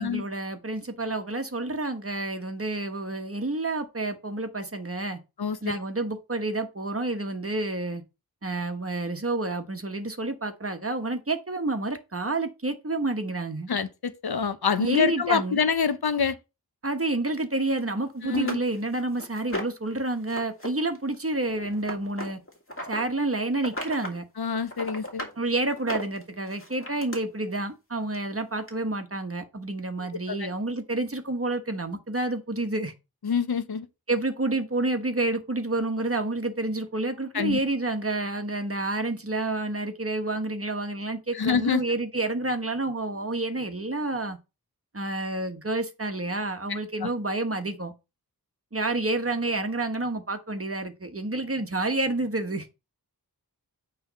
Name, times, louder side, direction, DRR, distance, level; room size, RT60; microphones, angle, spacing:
voice 1, 0.0-5.2 5.6-8.0 8.4-13.7 14.8-15.6 16.8-22.4 22.8-24.2 25.4-32.9 34.1-44.4 44.9-47.9 48.7-52.7, right 2 dB, 35° right, 1.2 m, -29 dB
voice 2, 5.4-5.7 13.7-16.4 18.2-18.6 24.4-25.3 30.3-30.5 33.2-33.9 37.3-37.6 41.4-41.8 47.0-47.1, left 6 dB, 80° left, 0.7 m, -26 dB
sound 1, 17.8-17.9 18.3-19.9 20.3-20.7 20.9-23.0 23.5-24.2 24.5-25.4 25.8-27.2 28.1-28.2 28.7-28.8, left 1 dB, 35° left, 2.1 m, -36 dB
8.8 x 3.4 x 5.2 m
wide cardioid pair, 50°, 37 cm